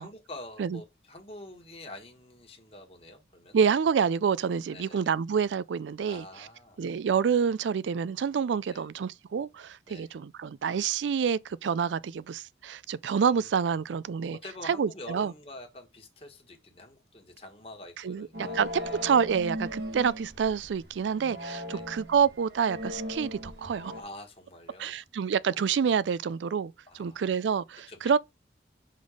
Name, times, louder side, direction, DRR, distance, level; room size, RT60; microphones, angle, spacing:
voice 1, 0.0-3.6 4.7-5.2 6.1-6.8 8.7-8.8 9.9-10.1 13.3-13.5 14.3-19.1 21.7-21.9 23.9-25.0 25.5-25.6 26.9-27.3 27.9-28.2, left 1 dB, 30° left, 1.4 m, -46 dB
voice 2, 3.5-6.2 6.8-14.4 14.7-15.3 18.0-18.7 19.0-23.9 24.8-28.2, right 6 dB, 85° right, 0.4 m, -27 dB
sound 1, 18.3-24.0, left 1 dB, 60° right, 1.5 m, -38 dB
5.3 x 3.9 x 5.0 m
head